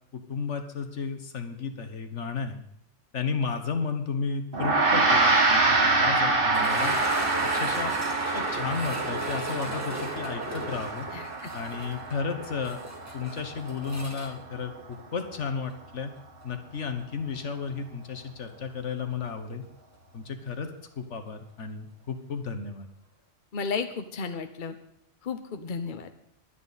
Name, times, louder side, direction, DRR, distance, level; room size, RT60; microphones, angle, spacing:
voice 1, 0.1-2.6 3.1-7.0 7.4-8.0 8.3-11.1 11.5-12.8 13.1-16.1 16.4-19.6 20.1-22.9, left 5 dB, 75° left, 7 dB, 1.6 m, -33 dB
Gong, 4.5-14.1, right 3 dB, 50° right, 2.0 m, -26 dB
sound 1, 6.5-15.4 15.7-15.8 16.4-16.5 19.1-19.2, right 1 dB, 15° right, 2.1 m, -37 dB
voice 2, 11.1-11.5 23.5-24.7 25.2-26.1, left 5 dB, 45° left, 8 dB, 1.1 m, -33 dB
22.5 x 9.4 x 4.2 m, 0.71 s
omnidirectional pair, 1.3 m